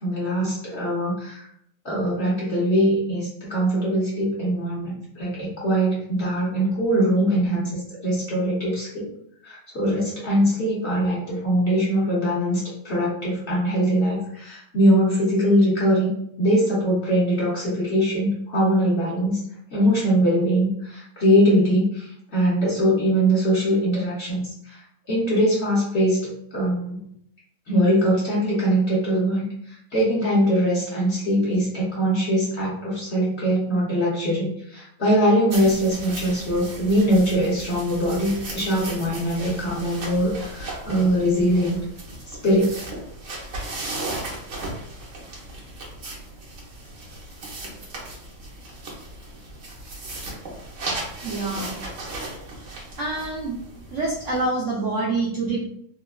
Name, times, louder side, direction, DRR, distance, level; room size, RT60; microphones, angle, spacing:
voice 1, 0.0-1.4 1.8-9.1 9.4-16.1 16.4-19.4 19.7-24.8 25.1-27.0 27.7-29.4 29.9-34.5 34.7-41.8 42.4-42.8 43.3-43.4, equal, 55° left, -6 dB, 0.8 m, -22 dB
sound 1, 35.5-54.4, right 2 dB, 55° right, 1.0 m, -36 dB
voice 2, 51.2-51.8 53.0-53.6 53.9-55.7, right 2 dB, 80° right, -2 dB, 0.6 m, -26 dB
3.5 x 2.2 x 2.2 m, 0.72 s
omnidirectional pair, 1.8 m